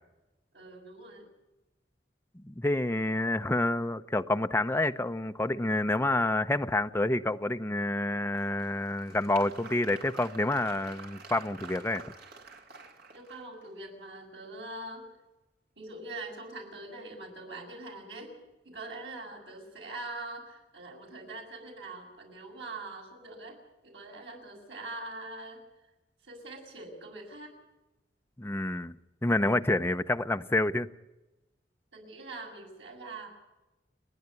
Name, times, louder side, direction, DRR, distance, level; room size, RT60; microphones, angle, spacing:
voice 1, 0.5-1.3 13.1-15.0 15.8-18.3 18.6-23.6 23.8-25.6 26.2-27.6 31.9-33.3, right 2 dB, 85° right, 7.2 m, -43 dB
voice 2, 2.4-12.0 28.4-28.9 29.2-30.9, left 2 dB, 15° left, 0.6 m, -28 dB
Applause, 8.3-13.7, right 4 dB, 60° right, 2.7 m, -48 dB
30.0 x 11.0 x 9.8 m
head